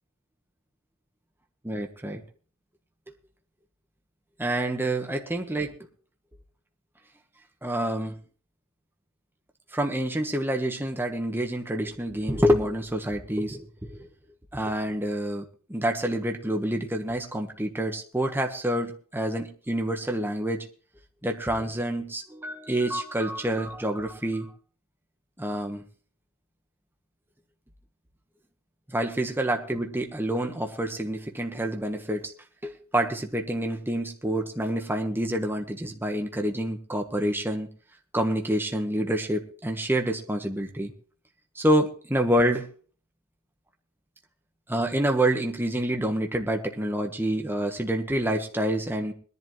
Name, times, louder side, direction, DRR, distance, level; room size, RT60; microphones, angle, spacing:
voice 1, 1.6-2.2 4.4-5.8 7.6-8.1 9.7-14.1 14.5-20.6 21.2-24.5 25.4-25.8 28.9-32.3 32.6-37.7 38.1-40.9 41.6-42.7 44.7-49.1, right 1 dB, 10° right, 3 dB, 1.4 m, -27 dB
21.0 x 11.0 x 3.2 m, 0.42 s
head